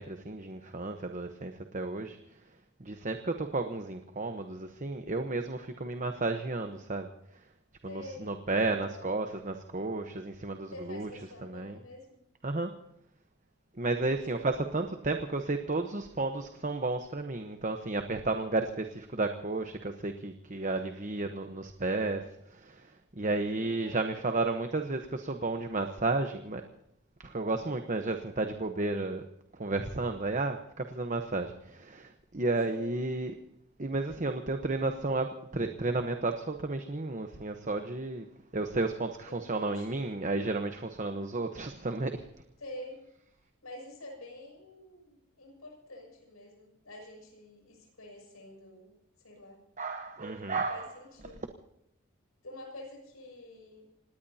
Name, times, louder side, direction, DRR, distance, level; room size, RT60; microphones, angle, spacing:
voice 1, 0.0-2.2 2.8-7.1 7.8-11.1 11.4-11.8 12.4-12.7 13.8-26.6 27.2-29.2 29.5-33.3 33.8-38.3 38.5-42.2 49.8-50.9, right 2 dB, 35° right, 6 dB, 1.0 m, -32 dB
voice 2, 7.8-8.3 8.6-9.2 10.7-12.2 14.4-14.5 23.5-24.5 32.7-33.0 39.3-40.0 42.6-43.1 43.6-49.6 50.2-50.4 50.7-51.5 52.4-53.9, left 1 dB, 85° left, 1 dB, 7.0 m, -48 dB
26.5 x 19.0 x 2.8 m, 0.79 s
head